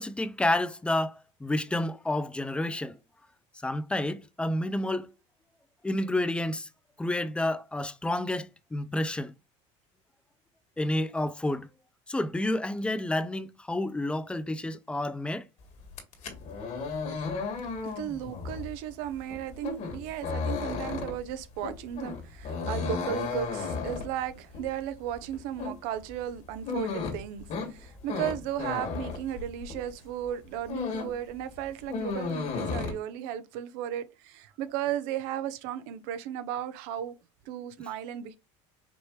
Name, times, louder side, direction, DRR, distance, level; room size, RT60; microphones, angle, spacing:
voice 1, 0.0-3.0 3.6-5.1 5.8-6.7 7.0-9.3 10.8-11.7 12.1-15.5, left 1 dB, 5° left, 0.4 m, -30 dB
sound 1, 15.8-29.9 30.3-31.2 31.5-32.9, left 4 dB, 50° left, 1.8 m, -34 dB
voice 2, 17.8-37.2 37.5-38.4, right 10 dB, 70° right, 0.8 m, -35 dB
5.3 x 3.0 x 3.2 m
supercardioid pair, 115°, 15 cm